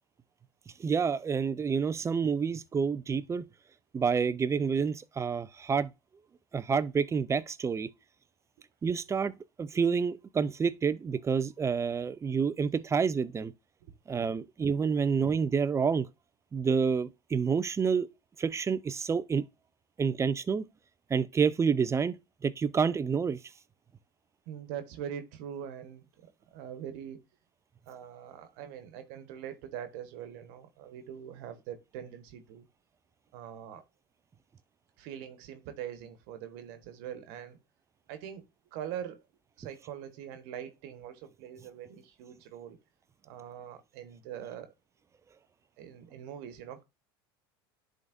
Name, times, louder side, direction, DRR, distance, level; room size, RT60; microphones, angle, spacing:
voice 1, 0.8-3.5 3.9-5.9 6.5-7.9 8.8-13.5 14.1-16.1 16.5-18.1 18.4-19.5 20.0-20.6 21.1-22.2 22.4-23.4, right 6 dB, 20° right, 0.5 m, -28 dB
voice 2, 24.5-27.2 27.9-32.7 33.3-33.8 35.0-37.6 38.1-39.2 39.6-42.8 43.2-44.7 45.8-46.8, right 9 dB, 70° right, 1.3 m, -43 dB
10.5 x 3.8 x 2.6 m
hypercardioid pair, 90°, 13 cm